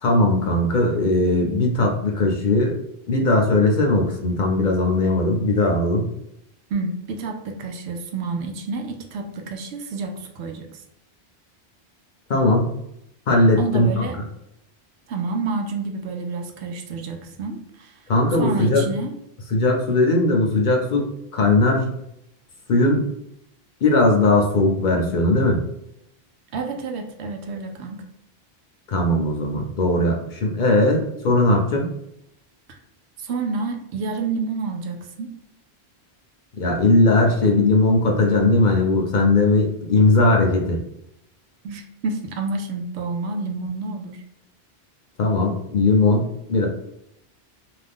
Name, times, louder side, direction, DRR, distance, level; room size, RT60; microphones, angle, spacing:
voice 1, 0.0-2.8 3.1-6.1 12.3-12.7 13.3-14.0 18.1-18.8 19.5-21.1 21.3-22.0 22.7-23.0 23.8-25.6 28.9-31.9 36.6-40.8 45.2-46.7, left 2 dB, 55° left, 1 dB, 0.6 m, -19 dB
voice 2, 6.7-10.8 13.6-14.2 15.1-17.9 18.4-19.2 26.5-28.0 32.7-32.8 33.2-35.3 41.6-44.2, right 3 dB, 90° right, 3 dB, 0.8 m, -29 dB
2.5 x 2.3 x 3.4 m, 0.79 s
omnidirectional pair, 1.1 m